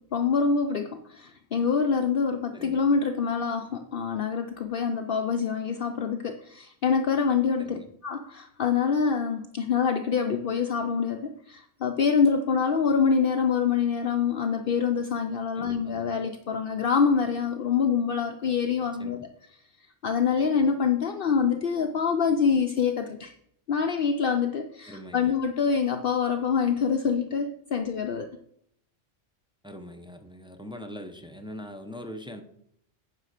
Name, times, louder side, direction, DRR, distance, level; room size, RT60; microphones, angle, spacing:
voice 1, 0.1-19.3 20.0-23.3 23.7-28.3, left 6 dB, 60° left, 5 dB, 0.8 m, -25 dB
voice 2, 2.5-2.8 7.6-7.9 15.5-16.0 19.0-19.2 24.9-25.4 29.6-32.4, equal, 5° right, 5 dB, 0.7 m, -42 dB
9.6 x 4.3 x 6.5 m, 0.70 s
omnidirectional pair, 1.1 m